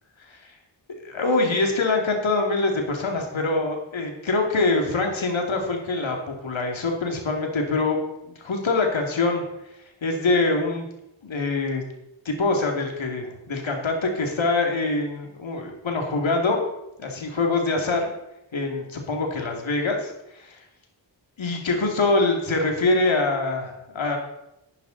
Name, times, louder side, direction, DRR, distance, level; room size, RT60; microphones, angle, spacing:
voice 1, 1.0-9.4 10.0-10.8 11.2-11.8 12.2-16.6 17.0-18.1 18.5-20.6 21.4-24.2, left 3 dB, 75° left, 2 dB, 2.5 m, -24 dB
12.0 x 9.2 x 4.0 m, 0.87 s
cardioid pair, 45°, 46 cm